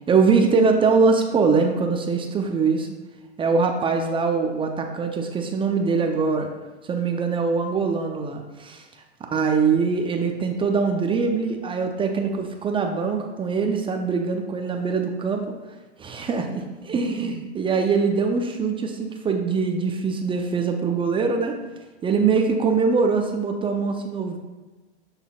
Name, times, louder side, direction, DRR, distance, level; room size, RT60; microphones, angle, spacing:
voice 1, 0.1-2.9 3.4-6.5 6.8-15.4 16.0-21.5 22.0-24.4, right 5 dB, 15° right, 4 dB, 0.5 m, -23 dB
11.5 x 4.0 x 2.3 m, 1.2 s
hypercardioid pair, 110°, 34 cm